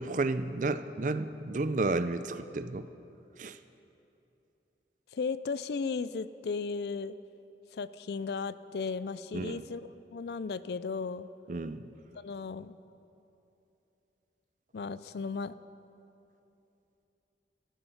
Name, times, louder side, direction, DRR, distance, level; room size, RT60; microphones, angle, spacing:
voice 1, 0.0-2.9 3.4-3.6 9.3-9.6 11.5-11.8, right 3 dB, 45° right, 12 dB, 0.5 m, -32 dB
voice 2, 5.1-7.2 7.7-11.3 12.1-12.8 14.7-15.6, left 4 dB, 65° left, 16 dB, 0.4 m, -35 dB
14.5 x 14.0 x 5.6 m, 2.9 s
head